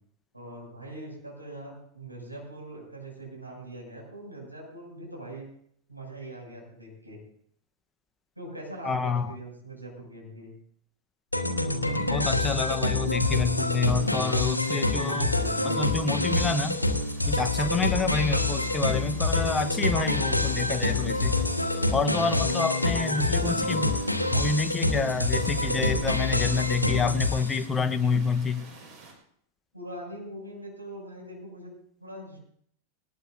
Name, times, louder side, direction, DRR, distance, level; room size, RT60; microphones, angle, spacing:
voice 1, 0.3-5.5 5.9-7.2 8.3-10.5 22.2-22.6 29.7-31.7 32.0-32.4, right 1 dB, 85° right, -2 dB, 6.7 m, -41 dB
voice 2, 8.8-9.3 12.1-15.3 15.6-16.8 17.3-21.4 21.9-23.9 24.3-28.6, left 4 dB, 15° left, 9 dB, 1.0 m, -28 dB
sound 1, 11.3-27.6, left 2 dB, 85° left, 1.4 m, -26 dB
sound 2, 13.8-29.1, right 4 dB, 35° right, 5.0 m, -49 dB
20.0 x 19.5 x 2.7 m, 0.65 s
figure-of-eight pair, 90°, 0 cm